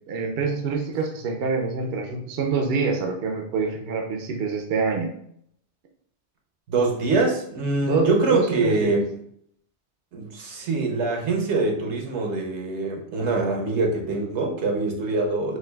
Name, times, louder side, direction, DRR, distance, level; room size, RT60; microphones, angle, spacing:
voice 1, 0.1-5.1 7.8-9.0, right 4 dB, 65° right, 3 dB, 0.7 m, -26 dB
voice 2, 6.7-9.0 10.1-15.6, right 3 dB, 80° right, 2 dB, 1.1 m, -24 dB
6.2 x 2.3 x 2.2 m, 0.69 s
omnidirectional pair, 1.1 m